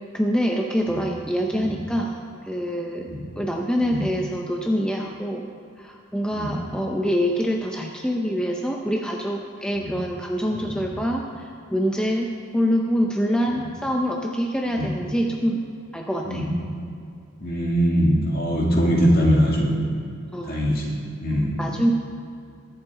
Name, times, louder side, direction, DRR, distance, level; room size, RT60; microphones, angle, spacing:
voice 1, 0.1-2.2 2.4-3.1 3.4-5.5 5.8-15.6 15.9-16.4 20.3-20.6 21.6-21.9, equal, 5° left, 0 dB, 0.5 m, -25 dB
voice 2, 10.5-10.9 13.5-13.6 14.7-14.9 16.2-16.5 17.4-19.8 20.5-20.9 21.2-21.6, equal, 45° left, -3 dB, 2.2 m, -22 dB
21.5 x 7.4 x 3.7 m, 2.5 s
head